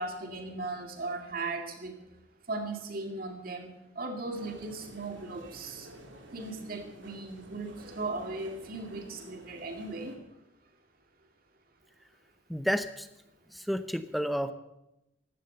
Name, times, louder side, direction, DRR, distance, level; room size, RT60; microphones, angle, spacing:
voice 1, 0.0-1.9 2.5-3.7 4.0-5.9 6.3-10.2, right 2 dB, 50° right, 4 dB, 2.4 m, -37 dB
sound 1, 4.3-10.2, right 1 dB, 80° right, 2.6 m, -51 dB
voice 2, 12.5-13.1 13.5-14.5, equal, ahead, 10 dB, 0.7 m, -30 dB
15.5 x 12.0 x 6.8 m, 0.88 s
head